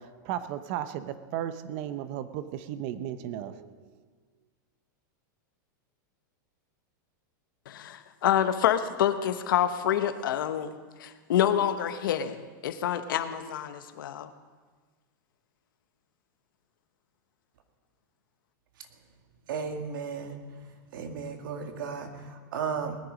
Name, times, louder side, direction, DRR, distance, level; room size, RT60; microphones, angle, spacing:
voice 1, 0.0-3.9, right 11 dB, 40° right, 12 dB, 0.7 m, -35 dB
voice 2, 7.7-10.7 11.0-14.3, left 10 dB, 75° left, 10 dB, 1.0 m, -27 dB
voice 3, 19.5-20.4 20.9-23.0, right 6 dB, 75° right, 5 dB, 1.9 m, -34 dB
19.5 x 10.0 x 5.2 m, 1.4 s
supercardioid pair, 165°, 11 cm